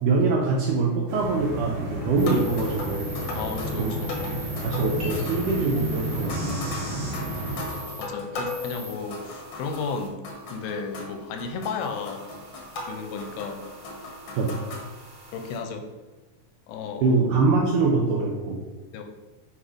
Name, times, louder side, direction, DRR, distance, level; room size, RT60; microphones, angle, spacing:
voice 1, 0.0-3.2 3.8-3.9 4.6-6.6 8.3-8.4 14.4-14.5 17.0-18.6, right 3 dB, 80° right, 0 dB, 1.8 m, -24 dB
sound 1, 1.1-7.6, right 1 dB, 65° right, 1.2 m, -32 dB
sound 2, 2.0-10.0 10.2-14.9, left 3 dB, 60° left, 1.5 m, -37 dB
sound 3, 2.2-8.1 8.5-15.6, right 1 dB, 35° right, 1.9 m, -43 dB
voice 2, 3.3-4.2 8.0-10.2 10.5-12.3 12.9-13.6 15.3-15.9 16.7-17.2 18.9-19.0, left 5 dB, 80° left, 6 dB, 2.5 m, -33 dB
8.3 x 5.5 x 5.0 m, 1.2 s
omnidirectional pair, 4.7 m